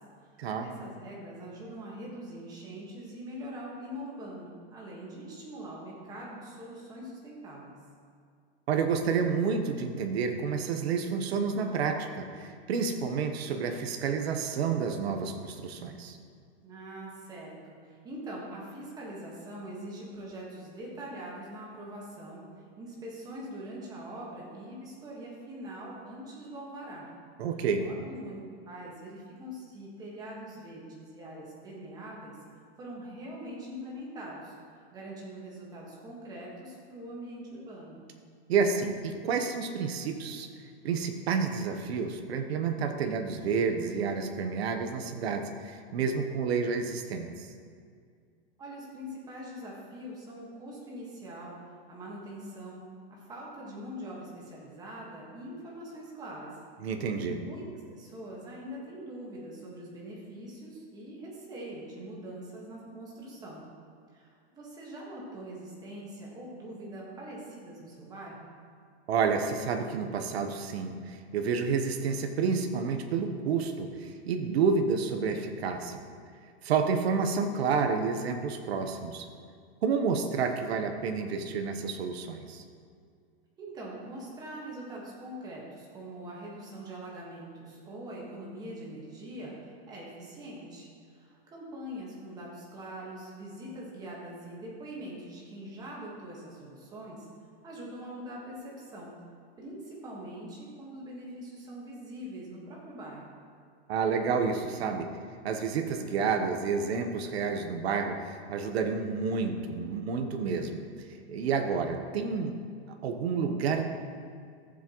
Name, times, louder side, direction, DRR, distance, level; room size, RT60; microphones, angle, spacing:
voice 1, 0.6-7.8 16.6-17.8 18.0-22.4 22.8-27.1 27.8-28.4 28.7-32.4 32.8-38.0 48.6-51.6 51.9-52.8 53.1-56.5 57.3-63.6 64.1-68.5 83.6-97.3 97.6-99.1 99.6-103.3, right 1 dB, 10° right, -4 dB, 1.4 m, -43 dB
voice 2, 8.7-16.2 27.4-27.9 38.5-40.5 40.8-47.5 56.8-57.4 69.1-76.0 76.6-79.3 79.8-82.6 103.9-105.1 105.4-110.9 111.3-112.6 113.0-113.8, right 5 dB, 75° right, 6 dB, 1.1 m, -29 dB
14.5 x 7.4 x 3.0 m, 2.2 s
supercardioid pair, 170°, 32 cm